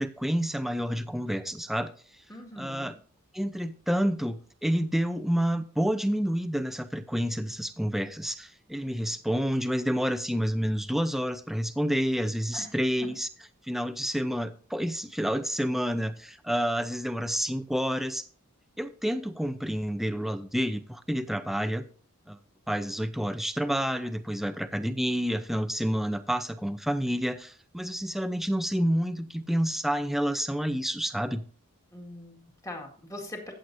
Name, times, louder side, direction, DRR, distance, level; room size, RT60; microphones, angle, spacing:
voice 1, 0.0-1.9 2.6-2.9 3.3-13.3 13.6-18.3 18.8-21.8 22.3-22.4 22.7-31.4, equal, ahead, 9 dB, 0.6 m, -29 dB
voice 2, 2.3-3.0 12.5-12.7 13.0-13.1 23.2-23.3 31.9-33.5, left 1 dB, 15° left, 2 dB, 2.0 m, -42 dB
15.0 x 7.8 x 2.7 m, 0.42 s
head